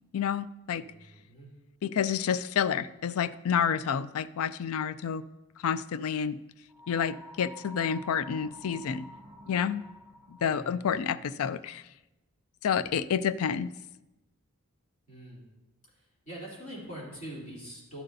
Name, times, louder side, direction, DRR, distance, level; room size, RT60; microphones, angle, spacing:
voice 1, 0.1-0.8 1.8-5.2 5.6-6.4 6.9-9.1 9.5-9.8 10.4-11.8 12.6-13.7, left 7 dB, 65° left, 16 dB, 0.4 m, -29 dB
voice 2, 0.7-1.5 10.4-11.1 15.1-15.5 15.9-18.0, right 1 dB, 35° left, -6 dB, 3.1 m, -44 dB
sound 1, 6.7-10.7, left 1 dB, 20° right, 1.7 m, -49 dB
11.5 x 11.0 x 2.7 m, 1.0 s
head